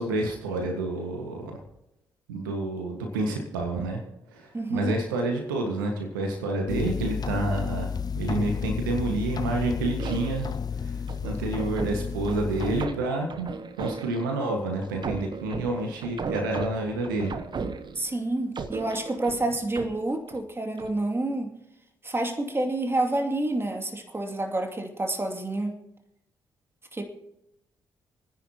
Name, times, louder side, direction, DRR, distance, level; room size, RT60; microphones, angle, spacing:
voice 1, 0.0-1.5 2.3-4.0 4.3-10.5 10.7-17.3, right 2 dB, 85° right, 2 dB, 1.7 m, -29 dB
voice 2, 4.5-5.0 17.9-21.6 22.0-25.8 26.9-27.1, right 2 dB, 20° right, 4 dB, 2.6 m, -28 dB
sound 1, 6.7-12.9, left 6 dB, 40° left, 0.7 m, -31 dB
sound 2, 10.0-10.6 11.1-14.3 14.8-18.2 18.6-20.4 20.8-21.0, right 5 dB, 45° right, 1.1 m, -36 dB
29.0 x 10.0 x 3.0 m, 0.86 s
hypercardioid pair, 45°, 11 cm